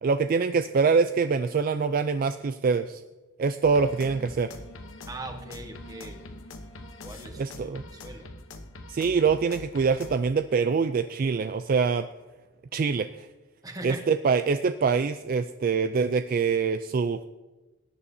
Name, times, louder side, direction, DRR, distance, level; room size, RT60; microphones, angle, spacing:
voice 1, 0.0-3.0 3.4-4.5 7.4-7.8 8.9-12.1 12.7-13.3 13.8-17.3, right 5 dB, 45° right, 10 dB, 0.3 m, -24 dB
sound 1, 3.6-10.2, left 2 dB, 75° left, 1.0 m, -43 dB
voice 2, 5.1-6.2 7.0-8.3 13.6-14.0, right 2 dB, 20° right, 4 dB, 1.2 m, -40 dB
18.5 x 9.9 x 2.7 m, 1.2 s
head